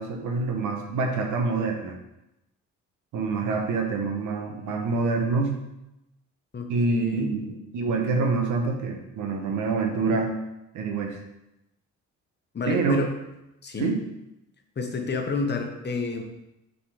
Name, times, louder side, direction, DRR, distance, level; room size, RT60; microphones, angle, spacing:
voice 1, 0.0-1.9 3.1-5.5 6.7-10.4 10.7-11.2 12.7-13.0 13.8-14.0, right 4 dB, 85° right, 3 dB, 1.1 m, -26 dB
voice 2, 6.5-7.4 12.5-13.1 13.6-13.9 14.8-16.2, left 4 dB, 35° left, 4 dB, 1.1 m, -29 dB
6.0 x 4.0 x 4.9 m, 0.90 s
cardioid pair, 90°, 30 cm